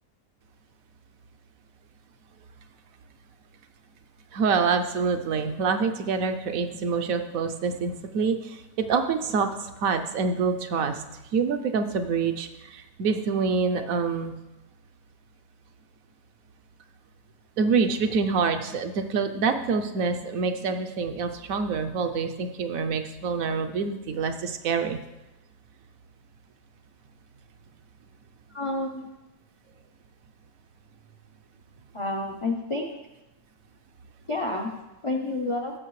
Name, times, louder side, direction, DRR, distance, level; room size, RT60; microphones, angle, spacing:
voice 1, 4.3-11.0 11.3-14.4 17.6-25.0, right 5 dB, 70° right, 7 dB, 1.0 m, -26 dB
voice 2, 28.5-29.1 31.9-32.8 34.3-34.7 35.0-35.7, left 2 dB, 45° left, 1 dB, 0.3 m, -29 dB
14.5 x 6.3 x 3.1 m, 0.99 s
omnidirectional pair, 1.6 m